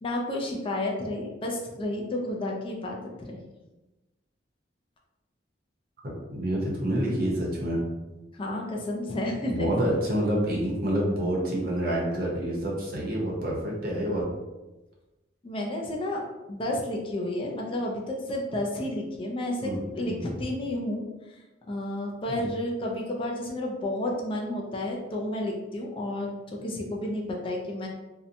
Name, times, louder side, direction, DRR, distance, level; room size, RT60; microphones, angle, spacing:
voice 1, 0.0-3.4 8.3-9.7 15.4-16.2 16.5-21.0 21.7-27.9, left 1 dB, 30° left, 0 dB, 0.4 m, -31 dB
voice 2, 6.3-7.8 9.5-14.3 19.6-20.2 22.3-22.4, right 1 dB, 55° right, -3 dB, 0.7 m, -28 dB
2.7 x 2.1 x 2.6 m, 1.1 s
head